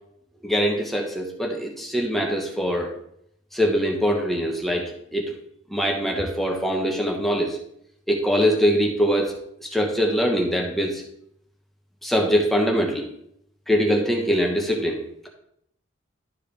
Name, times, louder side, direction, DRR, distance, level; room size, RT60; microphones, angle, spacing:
voice 1, 0.4-2.9 3.5-5.3 5.7-7.6 8.1-9.3 9.6-11.0 12.0-13.1 13.7-15.0, equal, ahead, -1 dB, 1.2 m, -23 dB
12.0 x 4.7 x 3.5 m, 0.73 s
head